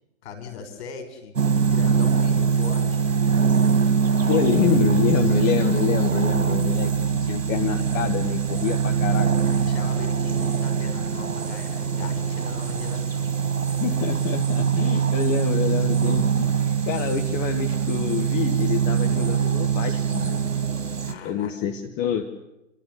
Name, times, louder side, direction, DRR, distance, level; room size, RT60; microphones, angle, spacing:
voice 1, 0.2-1.3 1.7-3.0 4.2-4.8 9.4-13.4 21.0-21.5, left 5 dB, 55° left, 7 dB, 5.7 m, -39 dB
sound 1, 1.4-21.1, right 6 dB, 85° right, 2.2 m, -23 dB
voice 2, 4.3-6.9 7.2-9.3 13.8-20.4 21.2-22.2, left 9 dB, 25° left, 5 dB, 1.3 m, -26 dB
29.0 x 13.0 x 9.6 m, 0.93 s
hypercardioid pair, 135°, 39 cm